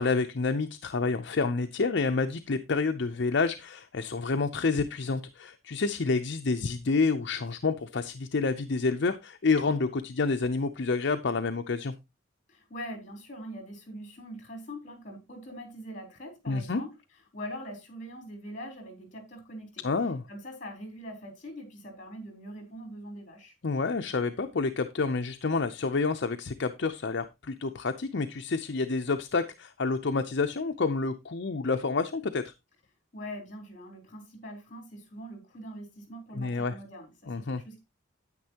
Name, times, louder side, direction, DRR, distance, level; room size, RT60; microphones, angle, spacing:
voice 1, 0.0-11.9 16.5-16.8 19.8-20.2 23.6-32.5 36.3-36.8 37.3-37.6, left 4 dB, 60° left, 0.6 m, -28 dB
voice 2, 12.5-16.9 17.3-19.8 20.3-23.6 33.1-37.8, equal, 40° left, 3.5 m, -43 dB
9.7 x 8.8 x 2.9 m
head